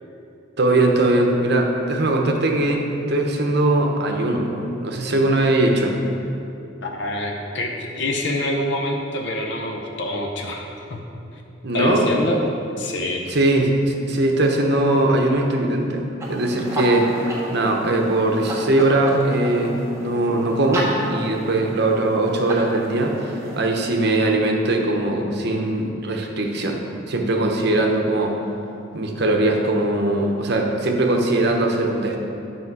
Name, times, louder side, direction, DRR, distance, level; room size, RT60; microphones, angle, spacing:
voice 1, 0.6-2.8 3.1-6.0 11.6-12.1 13.3-26.8 27.1-28.4 28.9-32.2, right 2 dB, 60° right, 2 dB, 0.9 m, -20 dB
voice 2, 6.8-11.0 11.7-12.4 12.8-13.2, left 1 dB, 65° left, 1 dB, 0.8 m, -26 dB
sound 1, 16.2-23.6, right 1 dB, 15° right, 1.2 m, -31 dB
8.4 x 5.8 x 4.7 m, 2.7 s
head